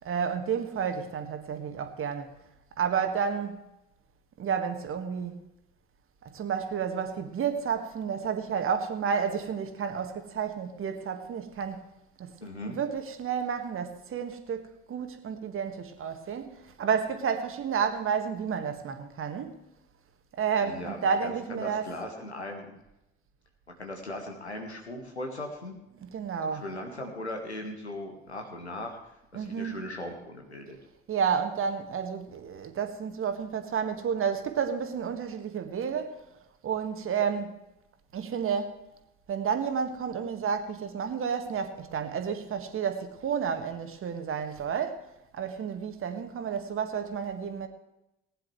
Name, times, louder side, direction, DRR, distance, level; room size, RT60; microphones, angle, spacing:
voice 1, 0.0-2.3 2.8-3.6 4.4-5.4 6.2-11.9 12.2-12.3 12.7-19.6 20.4-22.0 25.9-26.7 29.3-29.9 31.1-36.2 36.6-37.6 38.1-38.8 39.3-45.1 45.3-47.7, right 7 dB, 40° right, 1.7 m, -31 dB
voice 2, 12.4-12.8 20.6-22.8 23.8-25.8 26.5-29.0 29.3-30.8, left 1 dB, 85° left, 1.7 m, -38 dB
19.5 x 10.0 x 3.2 m
figure-of-eight pair, 50°, 32 cm